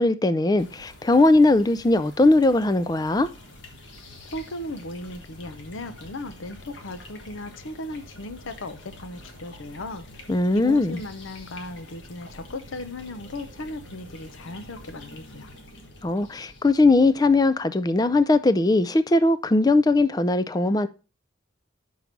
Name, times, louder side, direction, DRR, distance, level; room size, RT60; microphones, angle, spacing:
voice 1, 0.0-3.3 10.3-11.0 16.0-20.9, left 2 dB, 20° left, 0.3 m, -20 dB
sound 1, 0.6-18.8, left 1 dB, 65° left, 1.4 m, -46 dB
voice 2, 4.2-10.0 10.5-15.5, left 1 dB, 90° left, 0.7 m, -37 dB
5.9 x 4.7 x 5.1 m
head